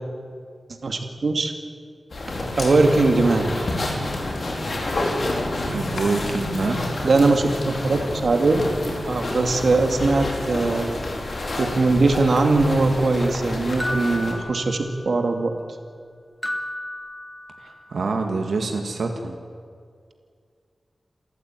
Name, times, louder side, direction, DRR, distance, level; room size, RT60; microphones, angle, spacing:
voice 1, 0.8-1.5 2.6-3.5 7.0-8.7 9.1-11.0 11.6-15.5, right 3 dB, 65° right, 5 dB, 2.4 m, -20 dB
sound 1, 2.1-14.3, left 2 dB, 55° left, 5.2 m, -29 dB
sound 2, 3.9-4.7 5.2-8.2 9.5-11.3 12.7-12.8, left 2 dB, 80° left, 5.1 m, -40 dB
voice 2, 5.7-6.9 17.6-19.3, right 3 dB, 90° right, 3 dB, 2.0 m, -26 dB
sound 3, 13.8-15.3 16.4-17.9, left 1 dB, 10° left, 2.4 m, -32 dB
28.0 x 14.5 x 9.3 m, 2.1 s
wide cardioid pair, 105°, 0 cm